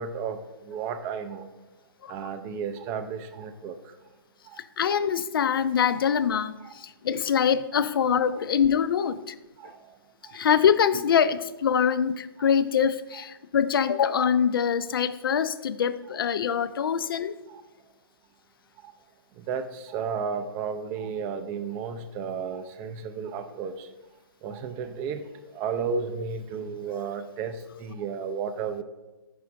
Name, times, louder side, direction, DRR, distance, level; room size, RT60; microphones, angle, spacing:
voice 1, 0.0-1.5 2.1-3.8 4.5-4.6 6.6-6.8 7.7-7.8 9.6-10.0 10.2-10.4 12.4-12.5 13.1-13.2 16.8-16.9 17.5-17.6 18.8-18.9 19.4-23.9 24.4-25.2 25.5-28.8, right 6 dB, 20° right, 10 dB, 0.3 m, -33 dB
voice 2, 4.8-9.3 10.3-17.3, left 7 dB, 65° left, 14 dB, 0.4 m, -24 dB
5.1 x 4.8 x 4.5 m, 1.1 s
hypercardioid pair, 140°, 13 cm